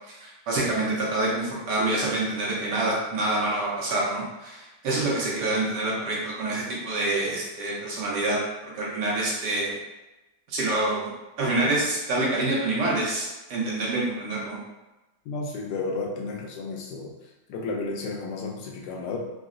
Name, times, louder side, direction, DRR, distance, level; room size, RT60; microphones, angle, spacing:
voice 1, 0.2-9.8 10.5-11.1 11.4-14.6, right 2 dB, 75° right, -4 dB, 1.4 m, -27 dB
voice 2, 15.3-17.1 17.5-19.2, left 3 dB, 75° left, 0 dB, 1.1 m, -32 dB
3.8 x 2.1 x 2.5 m, 1.0 s
omnidirectional pair, 1.9 m